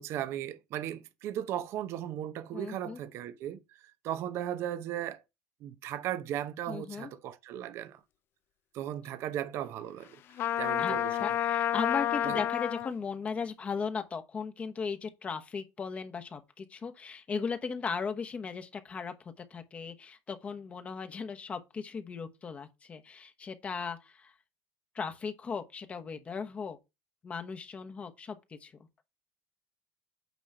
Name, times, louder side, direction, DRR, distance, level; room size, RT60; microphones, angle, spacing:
voice 1, 0.0-5.2 5.6-8.0 8.7-10.1 10.6-11.2 12.2-12.4, right 11 dB, 50° right, 0.7 m, -36 dB
voice 2, 2.5-3.0 6.7-7.1 10.8-24.3 24.9-26.8 27.2-28.7, left 5 dB, 20° left, 1.0 m, -37 dB
Trumpet, 10.4-12.9, left 11 dB, 40° left, 0.4 m, -29 dB
9.2 x 3.1 x 6.5 m
cardioid pair, 150°, 6 cm